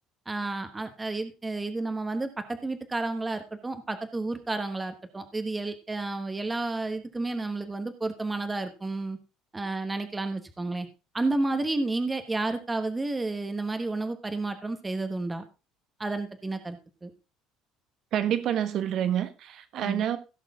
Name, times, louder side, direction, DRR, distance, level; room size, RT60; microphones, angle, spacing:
voice 1, 0.3-9.2 9.5-10.9 11.1-15.5 16.0-17.1 19.8-20.0, right 2 dB, 10° right, 1.1 m, -31 dB
voice 2, 18.1-20.2, right 10 dB, 45° right, 1.2 m, -27 dB
16.5 x 6.6 x 3.6 m
cardioid pair, 160°, 0 cm